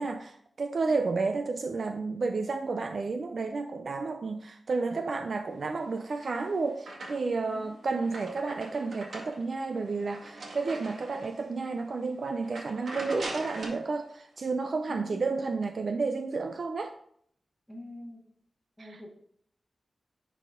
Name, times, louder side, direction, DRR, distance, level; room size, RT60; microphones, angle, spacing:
voice 1, 0.0-16.9 18.8-19.0, right 4 dB, 50° right, 6 dB, 0.5 m, -31 dB
sound 1, 5.9-7.5 7.8-11.5 11.9-12.1 12.4-13.9, right 2 dB, 75° right, 2.0 m, -42 dB
voice 2, 7.5-8.0 14.9-15.5 17.7-18.2 18.8-19.1, left 1 dB, ahead, -2 dB, 1.9 m, -45 dB
10.5 x 4.2 x 3.7 m, 0.65 s
wide cardioid pair, 170°, 0 cm